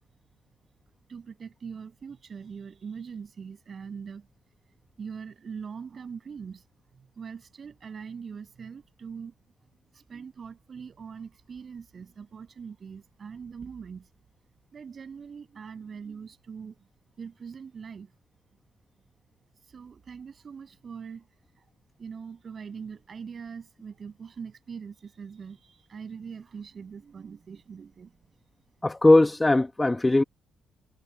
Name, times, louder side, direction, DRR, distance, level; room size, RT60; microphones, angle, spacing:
voice 1, 1.1-4.3 5.0-6.7 6.9-9.3 9.9-14.1 14.7-16.9 17.2-18.2 18.9-19.1 19.5-21.3 21.6-21.7 22.0-28.1, right 6 dB, 45° right, 7.6 m, -42 dB
voice 2, 28.8-30.2, left 2 dB, 15° left, 1.1 m, -19 dB
cardioid pair, 90°, 0 cm